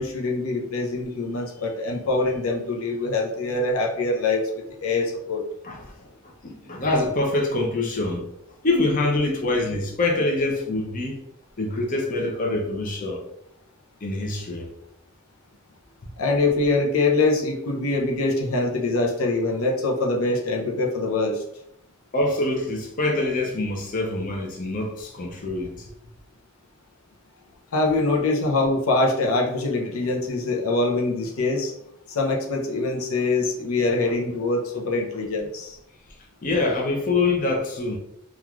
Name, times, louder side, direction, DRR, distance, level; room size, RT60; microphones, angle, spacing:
voice 1, 0.0-5.4 16.2-21.4 27.7-31.7 32.1-35.8, left 2 dB, 90° left, 0.6 m, -24 dB
voice 2, 5.6-8.3 8.6-11.2 11.6-13.2 14.0-14.7 22.1-25.9 36.4-38.0, left 2 dB, 40° left, 0.5 m, -25 dB
3.1 x 2.3 x 2.3 m
head